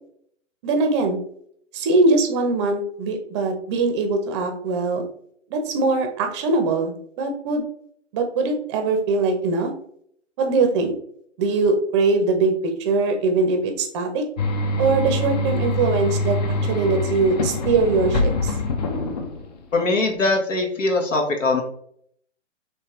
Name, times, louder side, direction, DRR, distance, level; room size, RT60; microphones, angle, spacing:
voice 1, 0.6-1.2 1.7-5.0 5.5-7.6 8.1-9.7 10.4-10.9 11.4-12.5 12.8-14.2 14.8-16.4 16.7-18.5, right 3 dB, 25° right, 5 dB, 0.6 m, -21 dB
sound 1, 14.4-19.7, left 2 dB, 35° left, 0.5 m, -24 dB
voice 2, 19.7-21.6, left 2 dB, 80° left, 3 dB, 1.3 m, -21 dB
4.3 x 3.2 x 3.0 m, 0.64 s
hypercardioid pair, 140°, 37 cm